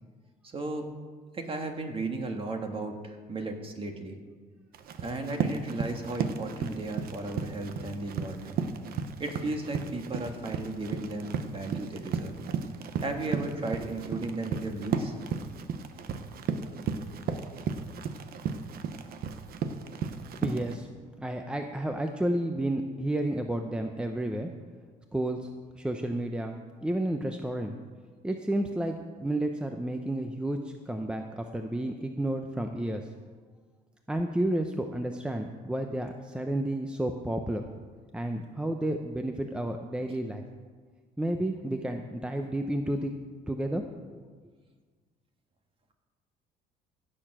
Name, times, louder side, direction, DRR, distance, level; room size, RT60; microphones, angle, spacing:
voice 1, 0.5-0.9 1.3-4.2 5.0-8.6 9.2-12.3 13.0-15.1, right 2 dB, 30° right, 4 dB, 1.8 m, -35 dB
Run, 4.7-20.7, right 6 dB, 65° right, 0.9 m, -34 dB
voice 2, 20.4-20.9 21.2-24.5 25.1-25.4 25.8-27.7 28.2-33.1 34.1-37.6 38.1-40.4 41.2-43.1 43.5-43.8, right 1 dB, 5° right, 5 dB, 0.7 m, -31 dB
16.0 x 6.8 x 6.2 m, 1.5 s
cardioid pair, 110°, 17 cm